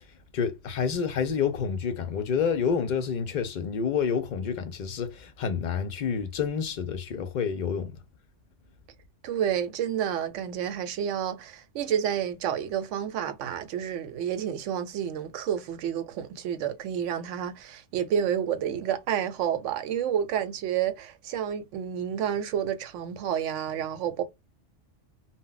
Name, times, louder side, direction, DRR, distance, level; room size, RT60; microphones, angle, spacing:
voice 1, 0.3-7.9, left 6 dB, 60° left, 0.4 m, -28 dB
voice 2, 9.2-24.2, right 9 dB, 85° right, 0.9 m, -30 dB
2.1 x 2.1 x 3.7 m
omnidirectional pair, 1.2 m